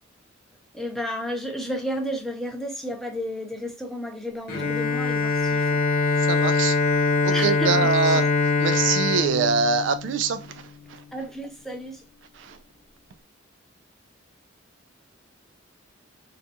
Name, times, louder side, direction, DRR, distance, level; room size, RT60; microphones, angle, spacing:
voice 1, 0.7-5.8 7.3-8.2 11.1-12.0, equal, ahead, 0.4 m, -32 dB
Bowed string instrument, 4.5-10.5, left 3 dB, 50° left, 0.7 m, -23 dB
voice 2, 6.3-6.8 7.2-8.2 8.6-10.5 10.9-11.0 12.4-12.6, right 5 dB, 65° right, 0.3 m, -24 dB
2.4 x 2.3 x 2.7 m
head